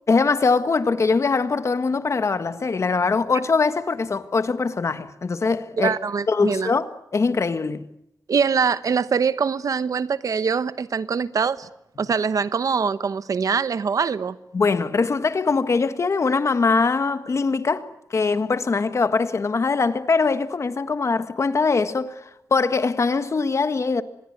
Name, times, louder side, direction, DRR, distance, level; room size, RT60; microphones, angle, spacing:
voice 1, 0.1-6.0 6.3-7.9 14.5-24.0, left 4 dB, 50° left, 1.5 m, -22 dB
voice 2, 5.8-6.7 8.3-11.7 12.0-14.4, right 6 dB, 70° right, 1.0 m, -23 dB
25.5 x 21.5 x 9.5 m
wide cardioid pair, 105°, 6 cm